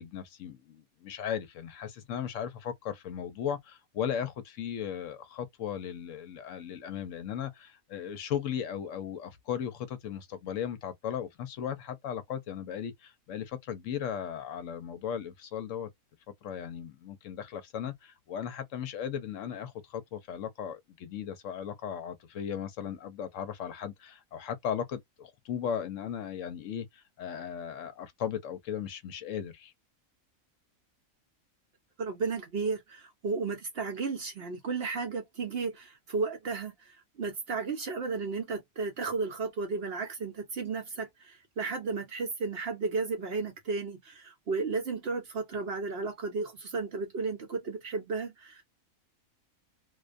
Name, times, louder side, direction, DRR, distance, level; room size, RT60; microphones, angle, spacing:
voice 1, 0.0-15.9 16.4-29.7, left 8 dB, 70° left, 0.9 m, -37 dB
voice 2, 32.0-48.6, right 4 dB, 55° right, 0.8 m, -34 dB
2.4 x 2.2 x 2.4 m
omnidirectional pair, 1.4 m